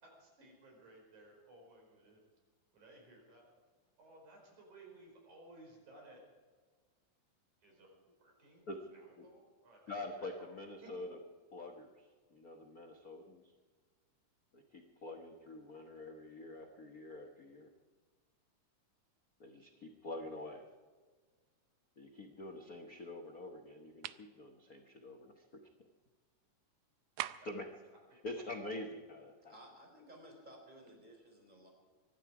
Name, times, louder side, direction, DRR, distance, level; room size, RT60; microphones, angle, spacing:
voice 1, 0.0-2.2 2.7-3.5 4.0-6.2 7.6-7.9 8.2-8.6 8.9-10.5 10.8-10.9 27.4-27.5 28.1-28.2, right 2 dB, 70° right, 0 dB, 6.3 m, -59 dB
voice 2, 9.9-11.2 11.5-13.5 14.5-17.7 19.4-20.7 22.0-25.6 27.4-27.7 28.2-29.6, left 2 dB, 75° left, 3 dB, 0.8 m, -46 dB
sound 1, 24.0-24.3 27.2-27.6, right 15 dB, 90° right, 2.2 m, -41 dB
voice 3, 29.5-31.7, equal, 15° right, 1 dB, 4.0 m, -56 dB
24.5 x 11.5 x 4.9 m, 1.5 s
omnidirectional pair, 3.6 m